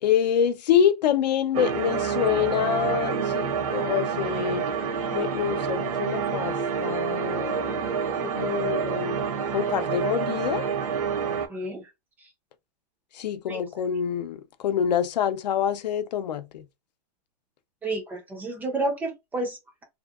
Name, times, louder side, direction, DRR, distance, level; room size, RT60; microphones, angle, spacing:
voice 1, 0.0-4.7 5.1-7.9 8.2-10.7 13.1-16.6, left 9 dB, 80° left, 0.6 m, -26 dB
sound 1, 1.5-11.5, right 6 dB, 60° right, 0.7 m, -28 dB
voice 2, 11.5-11.9 12.2-12.3 13.5-13.6 17.8-19.8, right 2 dB, 10° right, 0.4 m, -31 dB
2.8 x 2.7 x 2.3 m
supercardioid pair, 155°, 21 cm